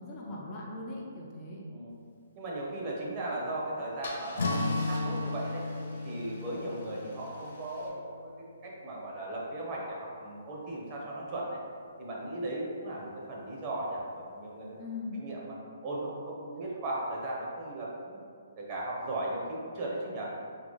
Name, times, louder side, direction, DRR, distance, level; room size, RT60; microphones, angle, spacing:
voice 1, 0.0-1.6 14.8-15.2, left 3 dB, 25° left, -4 dB, 0.5 m, -40 dB
voice 2, 2.4-5.6 6.0-11.6 12.0-14.8 15.2-15.5 15.8-18.2 18.6-20.3, right 1 dB, 30° right, -4 dB, 0.8 m, -37 dB
Car / Engine starting / Idling, 3.3-3.5 4.0-7.9, left 2 dB, 55° left, 1.0 m, -48 dB
Strum, 4.4-9.0, left 2 dB, 85° left, 0.3 m, -35 dB
3.7 x 2.8 x 3.9 m, 2.2 s
hypercardioid pair, 165°, 0 cm